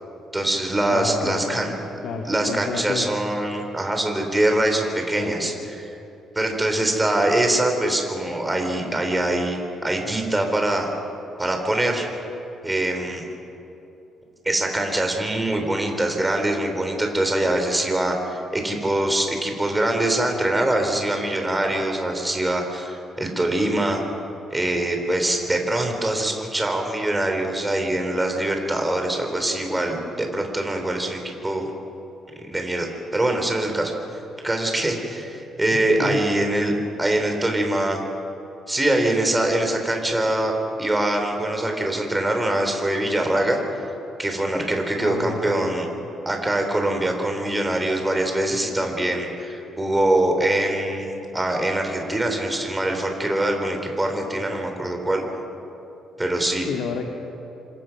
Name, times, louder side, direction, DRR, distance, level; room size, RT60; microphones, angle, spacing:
voice 1, 0.3-1.7 2.2-5.8 6.3-10.9 11.4-12.1 12.6-13.2 14.4-24.0 24.5-31.7 32.5-33.9 34.4-38.0 38.7-43.6 44.2-45.9 46.3-55.2 56.2-56.7, right 1 dB, 10° right, 3 dB, 4.1 m, -23 dB
voice 2, 0.9-1.8 2.0-3.2 5.2-5.7 35.7-36.3 45.0-45.7 56.6-57.1, left 5 dB, 75° left, 2 dB, 2.2 m, -31 dB
28.0 x 26.0 x 6.1 m, 2.9 s
cardioid pair, 120°, 0 cm